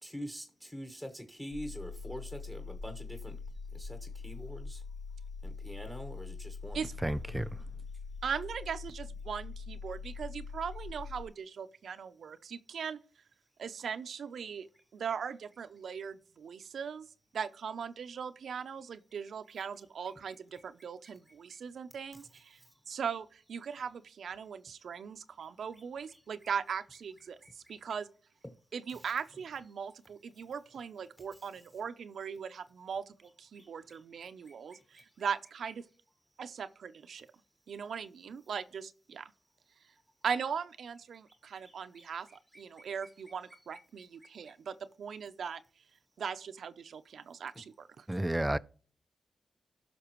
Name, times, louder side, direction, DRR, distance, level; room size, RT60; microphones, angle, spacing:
voice 1, 0.0-6.9 14.7-14.9 19.8-21.6 22.1-23.0 25.4-26.5 27.2-28.0 28.4-28.5 28.9-29.1 31.1-31.7 33.2-35.3 36.4-36.6 41.3-43.6 43.9-44.6, equal, 10° left, 1.1 m, -49 dB
sound 1, 1.5-11.3, left 4 dB, 70° left, 0.7 m, -43 dB
voice 2, 7.0-7.5 48.1-48.6, right 1 dB, 10° right, 0.4 m, -31 dB
voice 3, 8.2-13.0 13.6-14.7 14.9-17.1 17.3-22.4 22.9-27.4 27.7-28.1 28.7-33.0 33.4-34.8 35.2-35.8 36.4-37.3 37.7-39.3 40.2-42.3 42.6-45.6 46.2-48.0, right 7 dB, 75° right, 0.5 m, -39 dB
17.0 x 5.9 x 3.0 m
wide cardioid pair, 105°, 0 cm